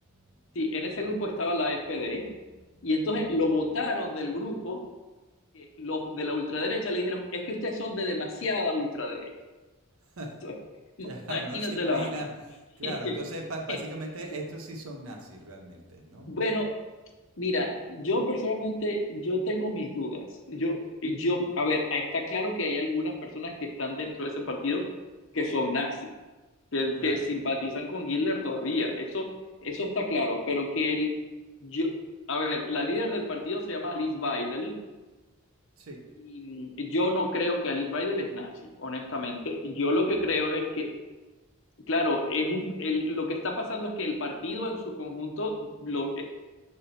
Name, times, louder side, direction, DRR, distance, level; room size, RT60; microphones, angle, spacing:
voice 1, 0.5-2.2 2.8-4.8 5.5-9.3 10.4-10.5 11.0-12.1 12.8-13.1 16.3-16.7 17.4-20.8 21.0-23.5 23.8-24.8 25.3-26.0 26.7-29.3 29.6-31.1 31.6-31.9 32.3-34.7 36.3-38.5 38.8-40.9 41.9-46.2, left 2 dB, 65° left, 2 dB, 0.9 m, -29 dB
voice 2, 10.0-10.4 11.0-16.3 27.0-27.2 35.8-36.1, right 1 dB, 90° right, 1 dB, 1.0 m, -39 dB
6.7 x 3.6 x 4.3 m, 1.2 s
head